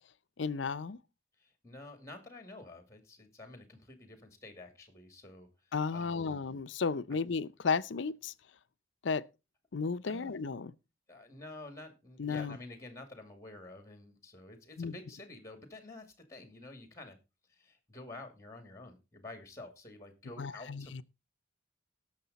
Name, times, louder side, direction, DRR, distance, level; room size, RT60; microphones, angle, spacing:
voice 1, 0.4-1.0 5.7-8.3 9.0-9.2 9.7-10.7 12.2-12.6 14.8-15.0 20.4-21.0, left 5 dB, 70° left, 0.6 m, -34 dB
voice 2, 1.4-5.5 5.9-6.4 10.0-10.4 11.1-17.2 17.5-21.0, left 2 dB, 15° left, 2.4 m, -49 dB
18.5 x 6.6 x 4.1 m
head